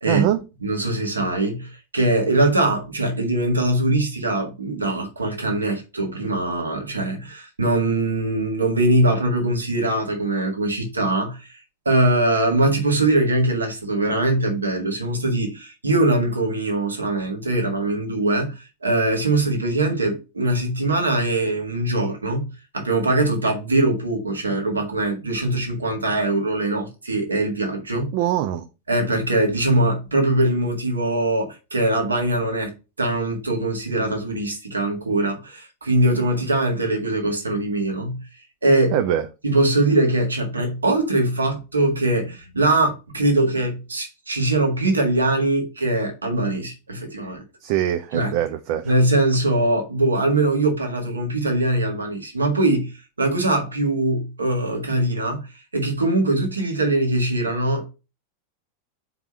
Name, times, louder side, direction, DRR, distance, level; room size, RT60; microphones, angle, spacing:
voice 1, 0.1-0.4 28.1-28.7 38.9-39.3 47.6-48.9, right 11 dB, 45° right, 0.5 m, -22 dB
voice 2, 0.6-11.5 11.8-22.5 22.7-28.1 28.9-32.7 33.0-38.2 38.6-39.0 39.4-47.4 48.1-48.3 48.8-52.9 53.2-57.9, right 2 dB, 75° right, 1.7 m, -22 dB
4.6 x 3.9 x 5.5 m
figure-of-eight pair, 90°, 0 cm